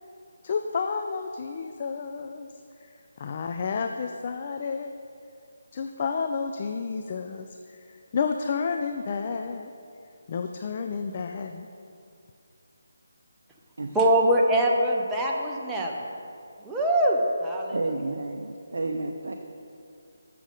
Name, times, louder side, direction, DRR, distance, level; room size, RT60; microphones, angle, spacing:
voice 1, 0.4-2.5 3.2-4.9 5.7-7.8 8.1-9.7 10.3-11.7, left 5 dB, 35° left, 5 dB, 0.3 m, -30 dB
voice 2, 13.9-16.1 16.6-17.8, right 1 dB, 10° right, -2 dB, 0.7 m, -23 dB
voice 3, 17.7-19.3, right 2 dB, 65° right, 3 dB, 0.5 m, -31 dB
7.2 x 6.4 x 5.1 m, 2.5 s
figure-of-eight pair, 150°, 0 cm